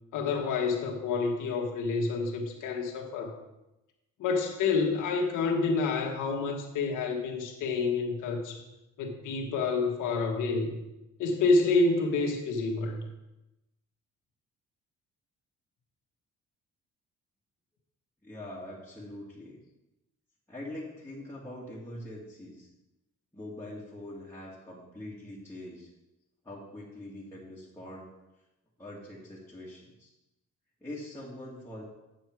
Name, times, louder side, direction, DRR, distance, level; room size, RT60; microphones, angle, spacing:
voice 1, 0.1-3.4 4.2-8.6 9.0-10.8 11.2-13.0, left 4 dB, 85° left, 2 dB, 1.6 m, -28 dB
voice 2, 18.2-19.6 20.5-22.7 23.3-25.9 26.4-28.1 28.8-30.1 30.8-31.8, left 1 dB, 10° left, -7 dB, 2.3 m, -43 dB
8.8 x 6.8 x 4.7 m, 0.96 s
cardioid pair, 90°, 30 cm